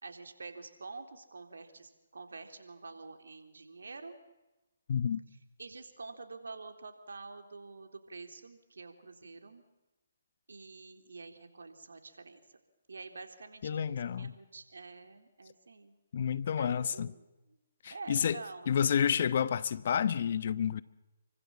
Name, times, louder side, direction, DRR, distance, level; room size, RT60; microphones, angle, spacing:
voice 1, 0.0-4.1 5.6-9.6 10.5-12.4 12.9-15.9 16.6-17.6 17.9-18.7, right 3 dB, 75° right, 3.7 m, -47 dB
voice 2, 4.9-5.2 13.6-14.3 16.1-17.1 17.8-18.4 18.7-20.8, left 8 dB, 50° left, 1.1 m, -30 dB
29.5 x 24.5 x 7.5 m
figure-of-eight pair, 140°, 0 cm